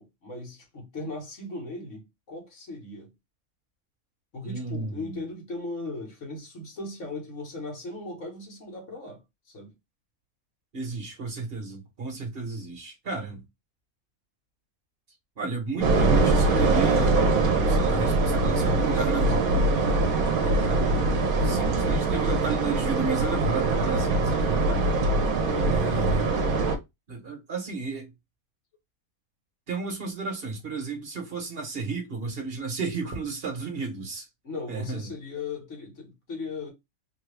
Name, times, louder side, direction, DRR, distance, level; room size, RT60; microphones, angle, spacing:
voice 1, 0.0-3.1 4.3-9.7 25.5-25.9 34.4-36.7, left 3 dB, 60° left, 1.6 m, -38 dB
voice 2, 4.4-5.2 10.7-13.4 15.4-19.7 20.4-24.8 25.6-26.3 27.1-28.1 29.7-34.3 34.7-35.1, right 4 dB, 45° right, 1.3 m, -33 dB
sound 1, 15.8-26.8, right 3 dB, 75° right, 1.2 m, -23 dB
3.4 x 2.3 x 3.3 m
omnidirectional pair, 1.5 m